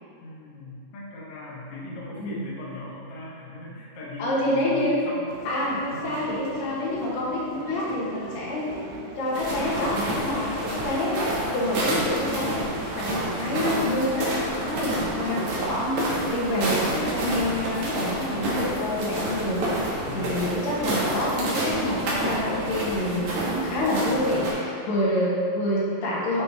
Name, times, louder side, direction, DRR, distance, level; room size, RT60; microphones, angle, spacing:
voice 1, 0.2-5.3 5.9-6.2 13.5-13.8 19.9-20.4, left 2 dB, 80° left, -7 dB, 1.2 m, -39 dB
voice 2, 4.2-5.0 5.5-8.7 9.2-11.1 11.5-12.6 13.0-26.4, left 1 dB, 65° left, -6 dB, 2.6 m, -27 dB
sound 1, 5.3-24.2, right 4 dB, 85° right, 2.7 m, -42 dB
sound 2, 9.3-24.5, right 1 dB, 60° right, 2.2 m, -29 dB
7.9 x 5.5 x 4.0 m, 2.5 s
omnidirectional pair, 5.0 m